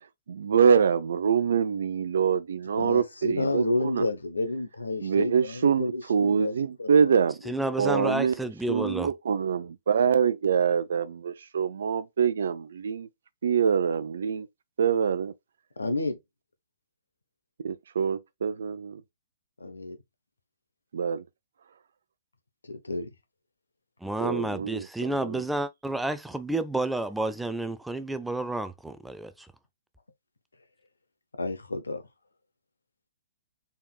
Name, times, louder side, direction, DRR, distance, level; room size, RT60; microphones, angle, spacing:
voice 1, 0.3-4.1 5.0-7.4 7.8-13.1 13.4-14.5 14.8-15.3 17.6-19.0 20.9-21.2 24.2-25.4, right 7 dB, 70° right, 0.6 m, -25 dB
voice 2, 2.8-7.2 7.7-7.8 15.8-16.2 19.6-20.0 22.7-23.1 31.4-32.0, left 2 dB, 90° left, 1.2 m, -30 dB
voice 3, 7.5-9.1 24.0-29.5, right 2 dB, 5° right, 0.4 m, -30 dB
4.2 x 3.7 x 2.5 m
hypercardioid pair, 130°, 0 cm